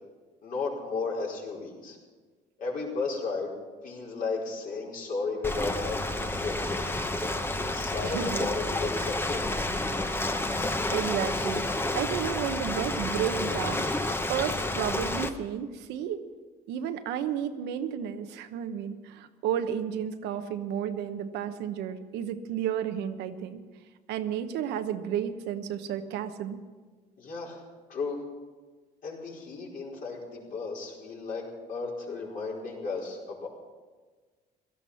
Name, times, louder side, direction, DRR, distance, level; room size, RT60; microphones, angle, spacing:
voice 1, 0.4-2.0 2.6-3.5 3.8-6.8 7.6-9.5 27.2-27.6 27.9-28.2 29.0-33.5, left 4 dB, 55° left, -3 dB, 4.8 m, -34 dB
Ocean, 5.4-15.3, left 2 dB, 15° left, 1.0 m, -30 dB
voice 2, 8.0-8.5 10.9-11.7 11.9-13.9 14.3-16.2 16.7-23.6 24.1-26.6, right 9 dB, 85° right, 8 dB, 1.1 m, -32 dB
17.0 x 13.5 x 5.7 m, 1.4 s
cardioid pair, 110°, 17 cm